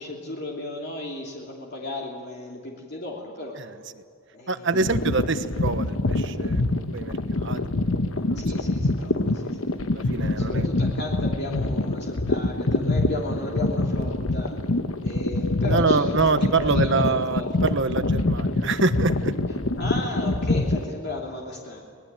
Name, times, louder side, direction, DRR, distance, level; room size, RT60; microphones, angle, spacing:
voice 1, 0.0-3.6 4.3-4.9 8.3-9.7 10.3-14.5 15.0-16.1 16.4-17.5 19.8-21.8, left 2 dB, 50° left, -2 dB, 2.9 m, -34 dB
voice 2, 4.5-8.6 9.9-10.7 15.6-19.3, right 4 dB, 60° right, 11 dB, 1.2 m, -26 dB
sound 1, 4.7-20.8, left 2 dB, 70° left, 1.2 m, -25 dB
25.0 x 20.0 x 9.0 m, 2.3 s
head